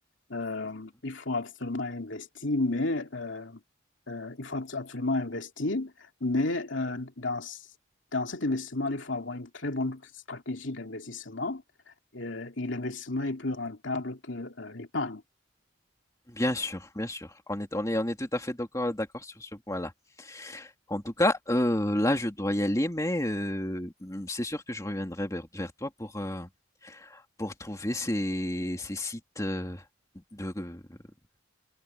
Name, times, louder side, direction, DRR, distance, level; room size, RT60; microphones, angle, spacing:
voice 1, 0.3-3.6 4.1-5.9 6.2-7.6 8.1-11.6 12.1-15.2, left 2 dB, 65° left, 2.7 m, -32 dB
voice 2, 16.3-19.9 20.2-26.5 26.8-29.9 30.1-31.0, left 1 dB, 15° left, 2.6 m, -31 dB
head